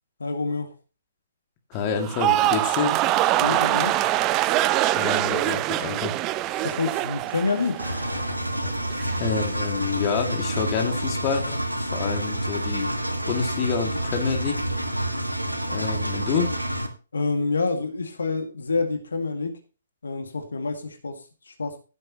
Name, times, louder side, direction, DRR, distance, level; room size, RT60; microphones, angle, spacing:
voice 1, 0.2-0.7 3.4-4.0 6.6-7.8 15.8-15.9 17.1-19.6 20.0-21.8, left 3 dB, 70° left, 6 dB, 2.0 m, -27 dB
voice 2, 1.7-3.0 5.0-6.1 9.2-12.9 13.3-14.6 15.7-16.5, left 6 dB, 30° left, 4 dB, 2.1 m, -27 dB
sound 1, 2.0-8.3 8.6-9.1, right 15 dB, 25° right, 0.5 m, -24 dB
Engine, 7.8-16.9, right 1 dB, 90° right, 1.7 m, -28 dB
15.5 x 7.6 x 2.9 m, 0.33 s
figure-of-eight pair, 125°, 0 cm